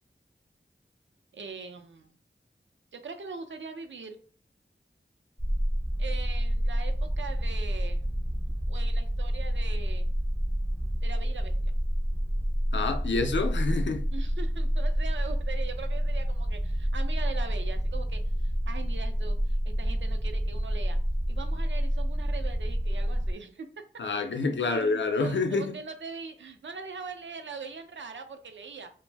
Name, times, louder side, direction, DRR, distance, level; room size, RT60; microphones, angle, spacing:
voice 1, 1.3-2.1 2.9-4.2 6.0-8.1 8.7-10.1 11.0-11.7 14.1-21.0 21.3-23.7 24.6-28.9, right 5 dB, 75° right, 0.4 m, -41 dB
sound 1, 5.4-23.3, equal, 10° right, 0.5 m, -28 dB
voice 2, 12.7-14.1 24.0-25.8, left 3 dB, 75° left, 0.4 m, -27 dB
2.5 x 2.0 x 3.2 m
wide cardioid pair, 40°, 19 cm